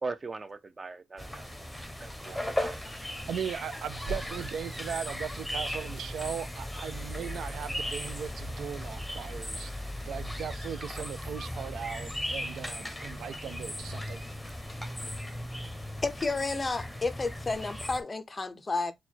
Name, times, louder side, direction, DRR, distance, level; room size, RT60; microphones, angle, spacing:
voice 1, 0.0-1.5 2.0-2.8, right 3 dB, 25° right, 0.5 m, -39 dB
sound 1, 1.2-18.0, left 1 dB, 5° left, 0.8 m, -37 dB
voice 2, 3.2-9.7 10.1-14.2, right 8 dB, 80° right, 0.4 m, -38 dB
sound 2, 4.0-7.0, right 1 dB, 50° right, 2.1 m, -44 dB
voice 3, 16.0-18.9, left 3 dB, 25° left, 0.4 m, -31 dB
4.4 x 2.2 x 4.3 m
wide cardioid pair, 150°, 0 cm